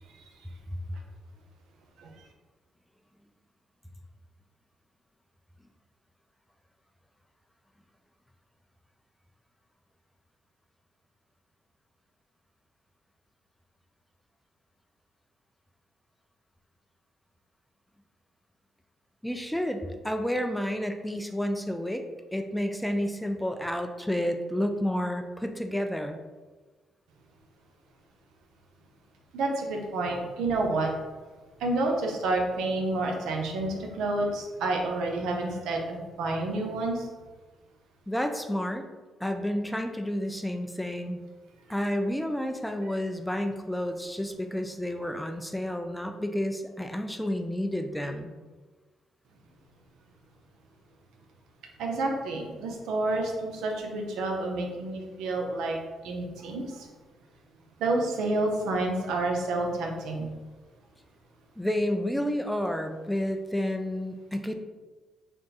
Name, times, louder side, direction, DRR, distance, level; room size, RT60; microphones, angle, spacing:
voice 1, 19.2-22.0 22.3-26.2 38.1-38.9 39.2-41.2 41.7-48.3 61.6-64.5, equal, 5° left, 5 dB, 0.3 m, -30 dB
voice 2, 29.3-30.9 31.6-37.1 42.8-43.0 51.8-55.8 56.0-56.9 57.8-60.3, right 2 dB, 85° right, 1 dB, 0.6 m, -29 dB
3.5 x 2.4 x 4.0 m, 1.3 s
cardioid pair, 90°, 0 cm